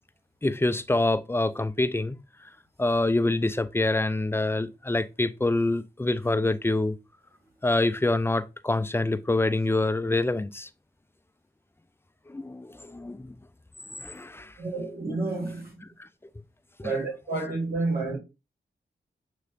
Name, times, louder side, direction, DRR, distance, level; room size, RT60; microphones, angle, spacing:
voice 1, 0.4-2.2 2.8-7.0 7.6-10.7 12.3-13.3 14.0-14.5 16.8-16.9, left 2 dB, 10° left, 0.4 m, -26 dB
voice 2, 14.6-15.8 16.8-18.2, right 3 dB, 50° right, 1.8 m, -30 dB
6.7 x 3.1 x 2.4 m
cardioid pair, 45°, 20 cm